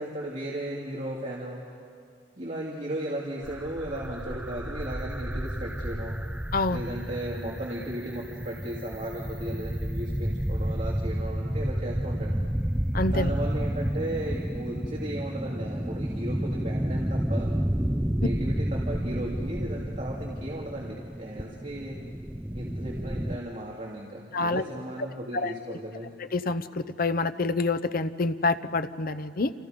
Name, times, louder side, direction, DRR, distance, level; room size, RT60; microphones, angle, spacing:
voice 1, 0.0-1.6 2.4-6.1 6.7-12.5 13.1-17.5 18.2-22.0 22.5-26.1, right 1 dB, 40° right, -4 dB, 2.6 m, -36 dB
sound 1, 3.4-23.4, equal, 5° right, 0.5 m, -31 dB
voice 2, 12.9-13.3 24.3-24.6 25.3-25.8 26.3-29.5, left 3 dB, 55° left, 13 dB, 0.8 m, -27 dB
29.5 x 27.5 x 5.2 m, 2.2 s
head